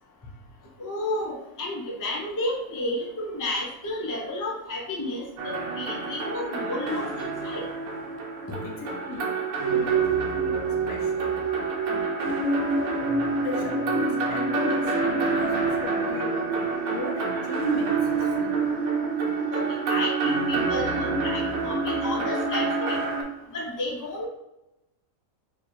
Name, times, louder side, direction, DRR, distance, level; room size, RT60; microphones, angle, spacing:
voice 1, 0.8-7.7 19.5-23.0 23.5-24.3, left 1 dB, 20° left, -2 dB, 0.5 m, -32 dB
sound 1, 5.4-23.2, right 4 dB, 80° right, 1.2 m, -27 dB
voice 2, 8.4-11.4 11.9-12.1 13.4-15.0 15.2-16.5 16.9-18.9, left 3 dB, 65° left, 0 dB, 0.9 m, -37 dB
4.4 x 3.2 x 2.7 m, 0.91 s
omnidirectional pair, 1.5 m